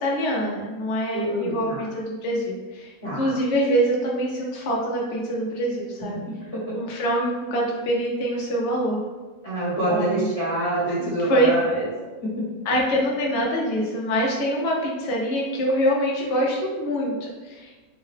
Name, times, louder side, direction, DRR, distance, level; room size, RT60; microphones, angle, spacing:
voice 1, 0.0-2.9 3.2-6.2 6.7-9.0 9.9-10.3 11.0-11.5 12.7-17.7, equal, 60° left, -2 dB, 0.7 m, -25 dB
voice 2, 1.1-1.9 3.0-3.3 6.1-6.2 6.5-6.7 9.4-11.9 12.2-12.4, right 1 dB, 25° left, -9 dB, 1.0 m, -26 dB
3.8 x 2.2 x 3.2 m, 1.3 s
omnidirectional pair, 2.0 m